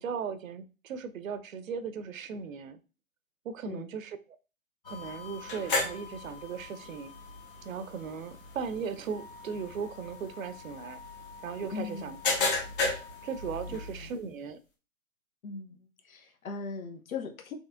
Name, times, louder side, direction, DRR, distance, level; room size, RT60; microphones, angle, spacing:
voice 1, 0.0-2.8 3.4-4.2 4.9-7.1 7.6-11.0 11.4-12.2 13.2-14.6, right 6 dB, 65° right, 12 dB, 0.6 m, -37 dB
sound 1, 4.8-14.2, left 3 dB, 40° left, 1.0 m, -36 dB
Wind instrument woodwind instrument, 9.1-13.9, left 7 dB, 5° left, 0.9 m, -50 dB
voice 2, 11.7-12.1 13.7-14.1 15.4-17.5, left 5 dB, 75° left, 4 dB, 0.9 m, -39 dB
4.3 x 3.1 x 2.5 m, 0.33 s
hypercardioid pair, 165°, 42 cm